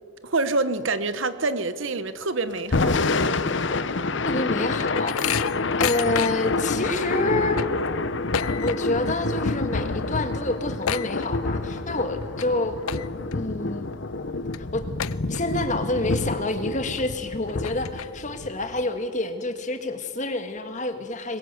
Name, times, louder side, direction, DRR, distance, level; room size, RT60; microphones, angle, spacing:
voice 1, 0.2-3.0, right 3 dB, 65° right, 1.2 m, -26 dB
Thunder / Rain, 2.6-18.8, left 3 dB, 60° left, 0.8 m, -28 dB
sound 1, 4.2-6.6 7.0-7.1 7.4-9.1 9.4-9.7 10.0-10.1 10.4-11.8 12.2-12.4 12.8-13.3 13.8-13.9 14.5-14.6 15.0-15.7 16.1-16.2 17.0-17.1 17.5-18.4, left 9 dB, 90° left, 0.6 m, -31 dB
voice 2, 4.2-5.4 5.8-7.6 8.6-12.8 13.3-13.9 14.6-14.8 15.3-21.4, left 2 dB, 35° left, 1.7 m, -28 dB
22.0 x 21.0 x 8.2 m
head